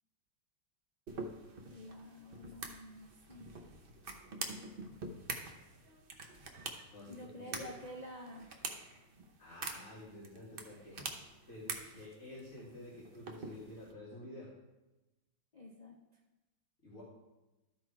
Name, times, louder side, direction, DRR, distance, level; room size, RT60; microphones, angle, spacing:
sound 1, 1.1-13.9, right 3 dB, 80° right, 0.5 m, -46 dB
voice 1, 1.7-3.5 7.1-8.5 15.5-16.0, left 1 dB, 80° left, -2 dB, 0.3 m, -49 dB
voice 2, 6.9-7.7 9.4-11.0 11.5-14.5 16.8-17.0, left 1 dB, 35° left, -7 dB, 2.1 m, -50 dB
12.5 x 4.4 x 4.6 m, 1.0 s
omnidirectional pair, 2.2 m